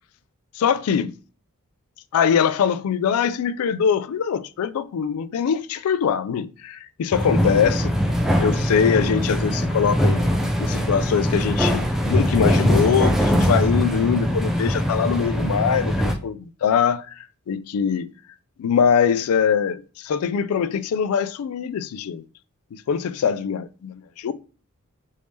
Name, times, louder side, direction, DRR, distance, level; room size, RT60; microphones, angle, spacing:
voice 1, 0.6-1.1 2.1-7.9 8.4-10.2 10.6-17.1 17.5-18.1 18.6-22.2 22.7-24.3, left 7 dB, 85° left, 0.3 m, -22 dB
sound 1, 7.1-16.1, equal, ahead, 0.4 m, -21 dB
3.4 x 2.7 x 3.1 m
head